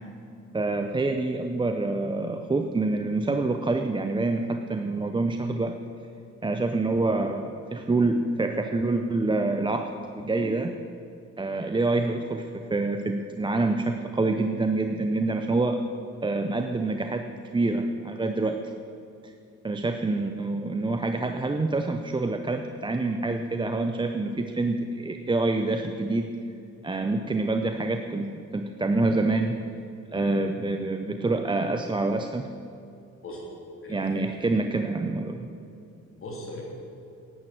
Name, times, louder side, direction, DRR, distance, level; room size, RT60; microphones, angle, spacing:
voice 1, 0.5-5.8 6.4-10.7 11.4-15.8 16.2-17.2 17.5-18.6 19.2-19.3 19.6-26.4 26.8-29.6 30.1-32.5 33.9-35.5, right 2 dB, 15° right, 6 dB, 0.6 m, -26 dB
voice 2, 33.8-34.3 36.1-36.6, left 1 dB, 45° left, -1 dB, 3.3 m, -39 dB
11.0 x 8.3 x 7.7 m, 2.6 s
cardioid pair, 90°, 30 cm